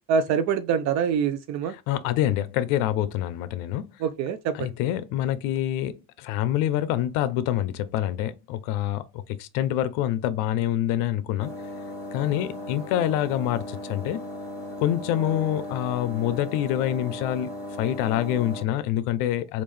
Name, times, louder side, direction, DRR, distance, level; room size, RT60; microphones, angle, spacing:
voice 1, 0.1-1.7 4.0-4.7, right 6 dB, 55° right, 0.4 m, -25 dB
voice 2, 1.9-3.9 4.5-11.5 12.1-14.2 14.8-19.6, left 12 dB, 85° left, 0.5 m, -26 dB
sound 1, 11.4-18.6, left 1 dB, 10° left, 1.3 m, -36 dB
3.6 x 2.5 x 3.1 m
cardioid pair, 140°, 32 cm